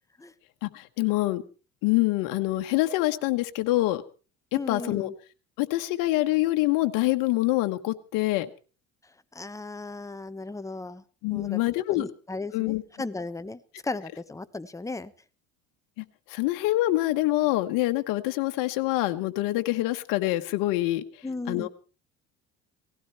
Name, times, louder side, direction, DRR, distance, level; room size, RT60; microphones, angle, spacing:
voice 1, 0.6-1.4 1.8-4.0 4.5-5.1 5.6-8.5 11.2-12.1 12.5-12.8 16.0-16.1 16.3-21.0 21.5-21.7, left 18 dB, 85° left, 8 dB, 1.3 m, -25 dB
voice 2, 4.5-5.1 9.3-11.0 11.3-11.6 11.9-15.1 21.2-21.7, left 3 dB, 10° left, 12 dB, 1.0 m, -36 dB
18.5 x 16.0 x 4.5 m, 0.36 s
cardioid pair, 105°, 31 cm